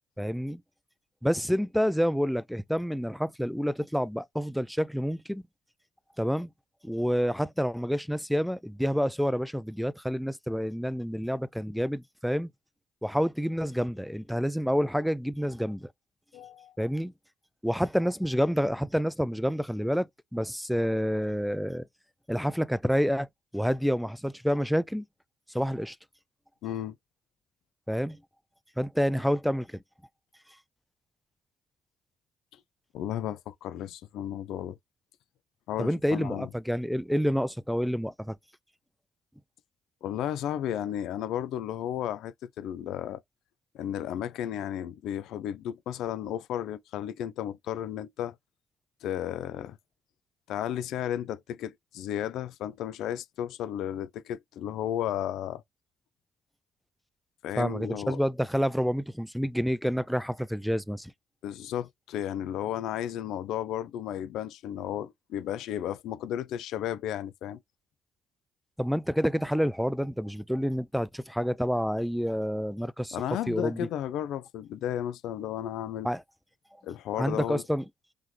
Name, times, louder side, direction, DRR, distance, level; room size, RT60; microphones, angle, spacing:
voice 1, 0.2-0.6 1.2-5.4 6.2-6.5 6.8-12.5 13.0-15.9 16.8-17.1 17.6-20.1 20.3-21.8 22.3-23.3 23.5-25.0 25.5-26.0 27.9-28.2 28.8-29.8 35.8-38.4 57.6-61.1 68.8-73.2 73.5-73.9 76.0-76.2 77.2-77.8, equal, ahead, 0.4 m, -28 dB
voice 2, 16.3-16.7 26.6-27.0 32.9-34.8 35.7-36.5 40.0-43.2 43.7-48.4 49.0-49.8 50.5-55.6 57.4-58.2 61.4-67.6 73.1-76.1 76.8-77.6, left 11 dB, 75° left, 0.4 m, -33 dB
3.6 x 3.2 x 3.1 m
hypercardioid pair, 55°, 0 cm